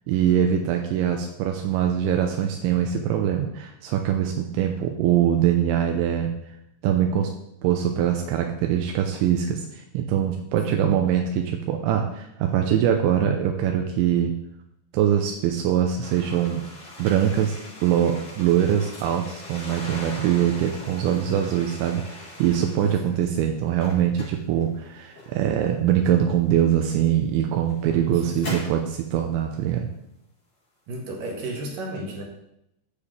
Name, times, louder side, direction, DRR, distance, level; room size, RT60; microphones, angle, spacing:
voice 1, 0.1-6.3 6.8-7.3 7.6-14.3 14.9-16.7 17.0-29.9, right 10 dB, 85° right, 3 dB, 3.0 m, -23 dB
voice 2, 10.6-10.9 22.8-23.3 28.1-28.4 30.9-32.2, right 1 dB, 60° right, 0 dB, 2.7 m, -34 dB
sound 1, 16.0-23.3 23.6-25.6 26.6-26.7 27.4-28.9, left 2 dB, 40° left, 5.8 m, -40 dB
15.0 x 7.4 x 3.3 m, 0.80 s
omnidirectional pair, 5.6 m